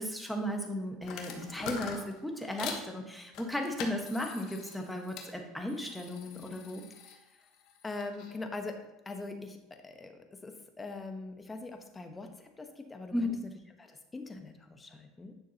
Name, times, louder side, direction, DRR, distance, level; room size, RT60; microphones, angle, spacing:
voice 1, 0.0-6.8 13.1-13.3, left 1 dB, 5° left, 2 dB, 1.4 m, -35 dB
sound 1, 1.0-2.9 3.3-5.3 5.7-8.3, left 6 dB, 60° left, 1.2 m, -44 dB
voice 2, 7.1-7.5 7.8-8.7 9.0-13.3 13.8-15.3, left 3 dB, 20° left, 5 dB, 1.1 m, -43 dB
9.6 x 6.4 x 2.9 m, 0.99 s
supercardioid pair, 95°, 0 cm